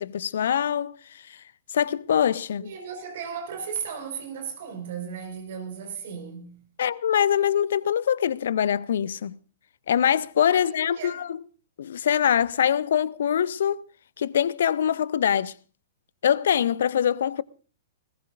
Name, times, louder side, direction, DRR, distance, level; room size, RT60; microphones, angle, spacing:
voice 1, 0.0-1.4 1.7-2.7 6.8-9.4 9.9-11.4 11.8-13.8 14.2-15.5 16.2-17.4, left 9 dB, 60° left, 0.6 m, -24 dB
voice 2, 2.6-6.6 10.5-11.2, right 7 dB, 50° right, 4.6 m, -36 dB
20.0 x 19.0 x 2.6 m
figure-of-eight pair, 110°, 0 cm